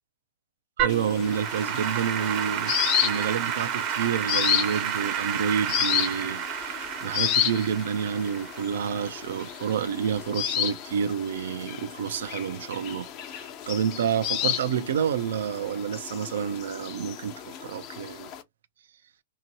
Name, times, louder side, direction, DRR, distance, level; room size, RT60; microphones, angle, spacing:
Applause / Keyboard (musical), 0.8-10.1, right 9 dB, 40° right, 0.7 m, -31 dB
voice 1, 0.8-18.3, right 8 dB, 70° right, 0.5 m, -29 dB
sound 1, 0.9-18.4, left 11 dB, 40° left, 0.7 m, -32 dB
2.9 x 2.9 x 2.7 m
hypercardioid pair, 125°, 0 cm